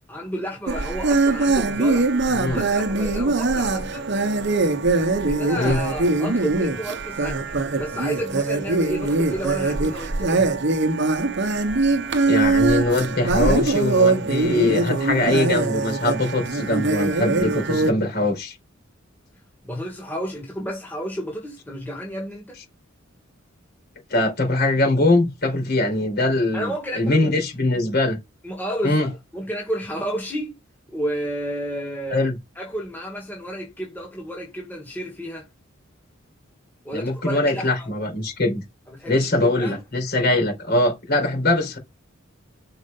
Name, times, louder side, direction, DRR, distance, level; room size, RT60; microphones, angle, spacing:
voice 1, 0.1-2.1 2.5-4.1 5.3-10.5 19.6-22.6 26.5-27.3 28.4-30.5 30.9-32.3 32.6-35.5 36.8-37.9 38.9-39.3 39.6-39.8, equal, 10° left, 2.4 m, -31 dB
sound 1, 0.7-17.9, right 3 dB, 60° right, 1.0 m, -22 dB
voice 2, 2.3-2.7 5.5-5.8 12.3-18.6 24.1-28.2 28.8-29.1 32.1-32.4 36.9-38.6 39.1-41.8, left 2 dB, 55° left, 4.6 m, -22 dB
6.5 x 4.8 x 5.5 m
head